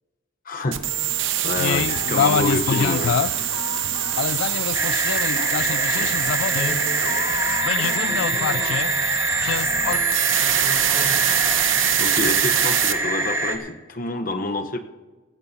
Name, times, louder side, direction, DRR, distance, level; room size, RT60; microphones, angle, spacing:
voice 1, 0.5-1.0 1.4-3.2 6.0-6.1 12.0-14.8, left 2 dB, 45° left, 7 dB, 0.9 m, -27 dB
sound 1, 0.7-12.9, right 12 dB, 85° right, 0.9 m, -24 dB
sound 2, 1.5-10.0, left 8 dB, 85° left, 0.3 m, -26 dB
sound 3, 4.7-13.6, right 1 dB, 15° right, 1.4 m, -25 dB
voice 2, 5.5-6.0 6.5-9.1 9.4-11.2, equal, 20° left, -2 dB, 3.9 m, -37 dB
18.0 x 15.5 x 2.8 m, 1.3 s
head